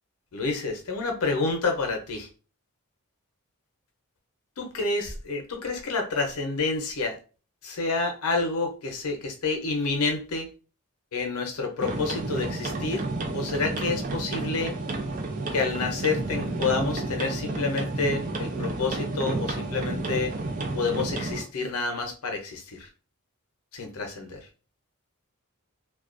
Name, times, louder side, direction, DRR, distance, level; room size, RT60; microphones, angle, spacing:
voice 1, 0.3-2.3 4.6-7.2 7.6-10.5 11.1-13.1 13.3-14.7 15.5-20.4 20.8-22.9 23.7-24.5, left 3 dB, 85° left, 4 dB, 0.6 m, -29 dB
sound 1, 11.8-21.4, right 2 dB, 35° right, 0.4 m, -31 dB
2.3 x 2.2 x 2.4 m, 0.35 s
head